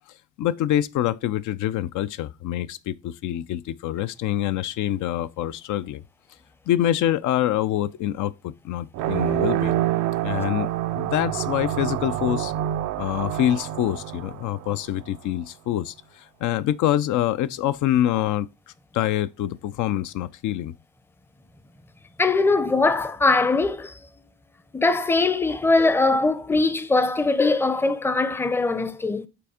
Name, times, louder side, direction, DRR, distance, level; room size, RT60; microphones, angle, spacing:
voice 1, 0.4-6.0 6.7-9.9 10.2-10.7 11.0-12.5 13.0-18.5 18.9-20.7, left 12 dB, 75° left, 0.5 m, -25 dB
sound 1, 8.9-15.1, right 13 dB, 75° right, 0.5 m, -27 dB
voice 2, 22.2-23.9 24.7-29.3, left 3 dB, 10° left, 0.5 m, -21 dB
6.0 x 3.5 x 4.8 m
cardioid pair, 90°, 30 cm